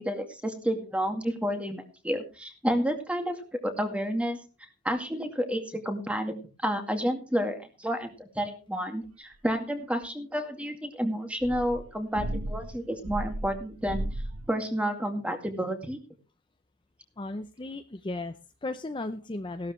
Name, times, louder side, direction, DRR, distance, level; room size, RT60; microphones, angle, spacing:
voice 1, 0.0-3.4 3.6-4.4 4.8-14.0 14.5-16.0, equal, 5° right, 5 dB, 2.1 m, -30 dB
sound 1, 11.4-14.5, right 1 dB, 85° right, 1.4 m, -35 dB
voice 2, 17.2-19.7, left 2 dB, 25° left, 8 dB, 0.6 m, -35 dB
16.0 x 12.5 x 3.2 m, 0.33 s
head